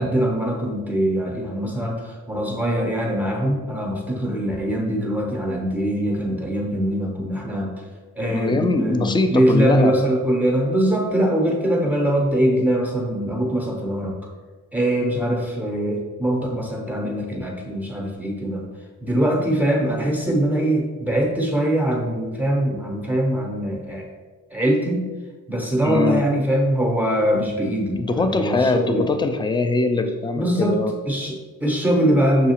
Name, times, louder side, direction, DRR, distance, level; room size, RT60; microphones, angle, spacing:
voice 1, 0.0-7.9 8.1-14.2 14.7-18.7 19.0-24.0 24.5-25.1 25.5-29.1 30.4-30.8 31.1-32.5, right 1 dB, 5° right, -1 dB, 0.7 m, -22 dB
voice 2, 8.3-10.0 25.8-26.2 28.0-31.0, left 3 dB, 15° left, 7 dB, 0.3 m, -22 dB
6.2 x 2.3 x 2.8 m, 1.4 s
cardioid pair, 80°, 33 cm